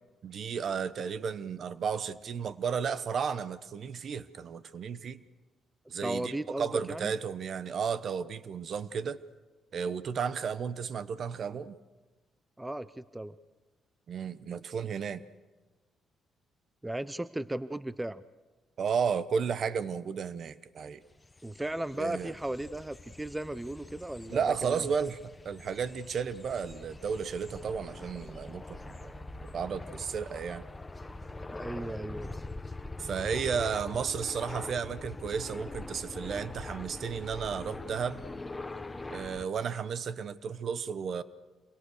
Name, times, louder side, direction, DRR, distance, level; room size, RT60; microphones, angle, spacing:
voice 1, 0.2-5.2 5.9-9.2 9.7-11.7 14.1-15.2 18.8-21.0 22.0-22.3 24.3-25.2 25.4-29.1 29.5-30.6 33.0-38.2 39.1-41.2, right 6 dB, 55° right, 15 dB, 1.1 m, -33 dB
voice 2, 6.0-7.1 12.6-13.3 16.8-18.2 21.4-24.8 31.5-32.3, right 1 dB, 10° right, 16 dB, 0.7 m, -36 dB
sound 1, 21.1-39.5, left 2 dB, 15° left, 1.3 m, -43 dB
28.0 x 23.0 x 6.6 m, 1.3 s
cardioid pair, 90°, 0 cm